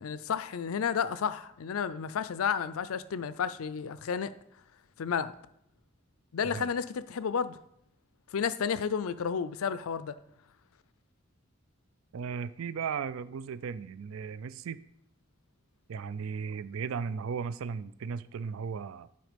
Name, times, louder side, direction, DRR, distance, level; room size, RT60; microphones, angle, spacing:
voice 1, 0.0-4.3 5.0-5.3 6.3-7.6 8.3-10.1, left 7 dB, 80° left, 0.4 m, -31 dB
voice 2, 12.1-14.8 15.9-19.1, right 6 dB, 75° right, 0.4 m, -36 dB
9.3 x 4.4 x 5.1 m
head